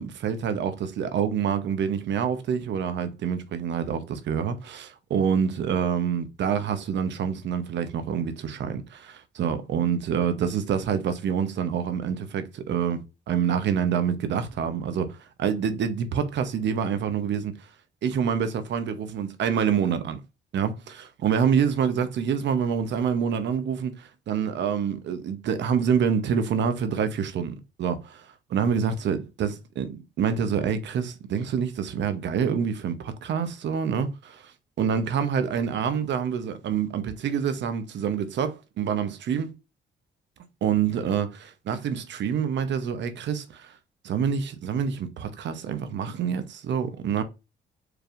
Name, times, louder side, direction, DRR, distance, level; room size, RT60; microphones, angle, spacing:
voice 1, 0.0-17.7 18.0-20.2 20.5-20.7 21.2-28.2 28.5-34.5 34.8-39.5 40.6-43.7 44.0-47.2, right 7 dB, 65° right, 0.8 m, -27 dB
4.7 x 3.4 x 2.5 m
cardioid pair, 90°, 20 cm